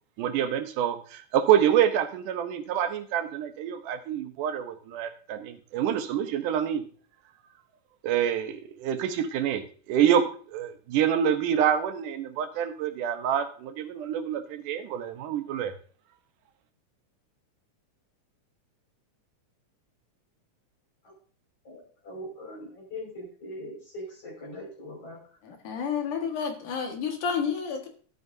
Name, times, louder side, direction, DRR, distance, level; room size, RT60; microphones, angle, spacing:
voice 1, 0.2-6.8 8.0-15.7, right 9 dB, 90° right, 8 dB, 2.5 m, -27 dB
voice 2, 21.6-25.2, left 1 dB, 50° left, -2 dB, 6.5 m, -41 dB
voice 3, 25.4-27.9, left 6 dB, 85° left, 3 dB, 3.2 m, -30 dB
13.0 x 11.5 x 2.7 m, 0.43 s
omnidirectional pair, 3.6 m